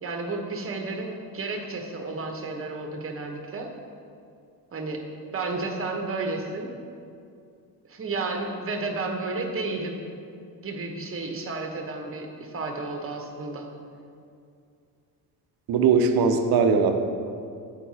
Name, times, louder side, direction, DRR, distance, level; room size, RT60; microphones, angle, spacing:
voice 1, 0.0-3.7 4.7-5.1 5.3-6.7 7.9-10.0 10.6-13.7, right 3 dB, 30° right, 3 dB, 1.1 m, -32 dB
voice 2, 15.7-17.2, right 5 dB, 60° right, 7 dB, 0.8 m, -20 dB
8.5 x 4.6 x 4.2 m, 2.4 s
supercardioid pair, 85°, 42 cm